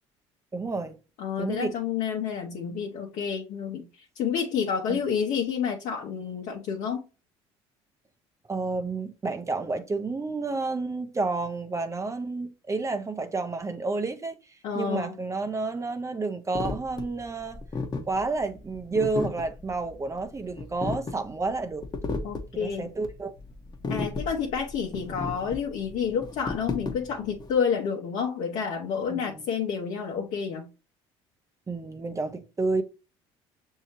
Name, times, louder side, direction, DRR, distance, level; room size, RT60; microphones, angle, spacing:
voice 1, 0.5-1.0 1.4-1.7 4.9-5.0 8.5-14.4 14.7-17.6 18.1-21.8 22.5-23.3 29.1-29.4 31.7-32.8, right 3 dB, 20° right, 0.6 m, -30 dB
voice 2, 1.2-7.0 14.6-15.1 22.2-22.9 23.9-30.7, left 7 dB, 65° left, 0.9 m, -29 dB
sound 1, 16.5-27.5, left 3 dB, 30° left, 0.9 m, -34 dB
6.2 x 2.8 x 2.9 m
hypercardioid pair, 70°, 13 cm